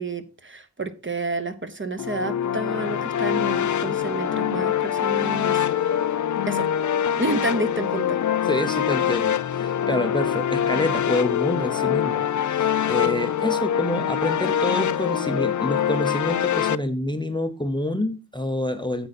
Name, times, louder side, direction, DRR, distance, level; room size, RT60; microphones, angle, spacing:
voice 1, 0.0-5.6 6.5-6.7 7.2-8.2, right 2 dB, 30° right, 9 dB, 1.1 m, -29 dB
sound 1, 2.0-16.8, left 9 dB, 50° left, 0.5 m, -24 dB
voice 2, 8.4-19.1, left 1 dB, 10° left, 8 dB, 0.8 m, -27 dB
9.3 x 7.8 x 4.2 m, 0.32 s
wide cardioid pair, 100°, 39 cm